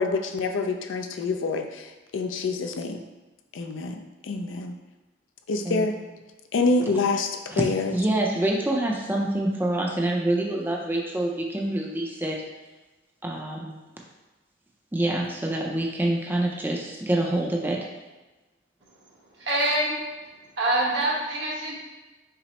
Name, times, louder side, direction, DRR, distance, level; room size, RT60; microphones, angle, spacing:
voice 1, 0.0-3.0 3.5-4.8 5.5-6.0 6.5-8.0, left 3 dB, 85° left, 5 dB, 0.4 m, -27 dB
voice 2, 7.9-12.4 13.2-13.7 14.9-17.9, right 1 dB, 10° right, -1 dB, 0.4 m, -26 dB
voice 3, 19.4-20.0 20.6-21.8, right 1 dB, 70° right, -5 dB, 1.2 m, -25 dB
5.8 x 2.0 x 4.2 m, 1.2 s
head